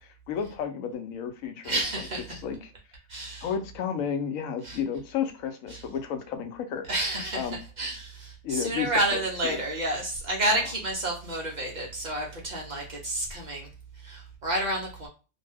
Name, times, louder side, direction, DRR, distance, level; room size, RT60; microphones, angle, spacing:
voice 1, 0.3-1.8 2.3-2.7 3.4-6.9 7.4-7.6 8.4-8.9 9.4-9.6, left 7 dB, 75° left, 6 dB, 1.0 m, -32 dB
voice 2, 1.6-2.4 3.1-3.5 4.6-4.8 5.7-5.8 6.9-13.7 13.9-15.1, right 1 dB, 50° right, 0 dB, 0.5 m, -30 dB
2.5 x 2.2 x 3.3 m, 0.33 s
omnidirectional pair, 1.4 m